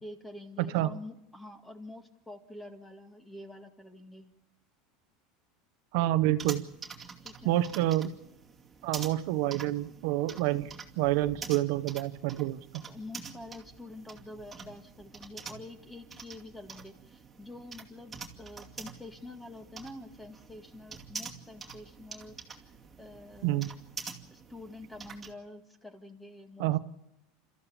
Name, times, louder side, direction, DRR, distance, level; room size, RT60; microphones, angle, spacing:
voice 1, 0.0-4.3 7.2-7.6 12.3-12.4 12.9-22.7 23.0-23.7 24.3-26.8, left 2 dB, 5° left, 6 dB, 2.0 m, -47 dB
voice 2, 0.6-0.9 5.9-6.6 7.4-8.1 8.8-10.7 11.0-12.6 23.4-23.7 26.6-26.8, right 15 dB, 65° right, 11 dB, 0.9 m, -28 dB
sound 1, 6.4-25.3, right 5 dB, 15° right, 2.5 m, -46 dB
30.0 x 14.0 x 7.2 m, 0.86 s
supercardioid pair, 145°, 0 cm